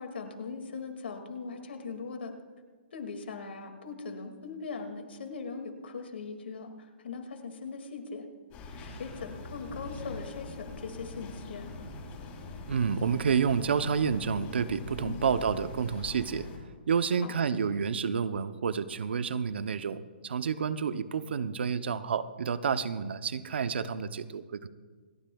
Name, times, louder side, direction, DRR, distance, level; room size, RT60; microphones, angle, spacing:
voice 1, 0.0-2.3 2.9-8.3 8.7-11.7 15.0-15.2 17.2-17.3, left 4 dB, 80° left, 5 dB, 2.1 m, -40 dB
sound 1, 8.5-16.6, left 3 dB, 25° left, 3.2 m, -43 dB
voice 2, 12.7-16.5 16.9-24.7, right 6 dB, 75° right, 13 dB, 0.6 m, -29 dB
27.5 x 10.5 x 2.3 m, 1.5 s
hypercardioid pair, 145°, 6 cm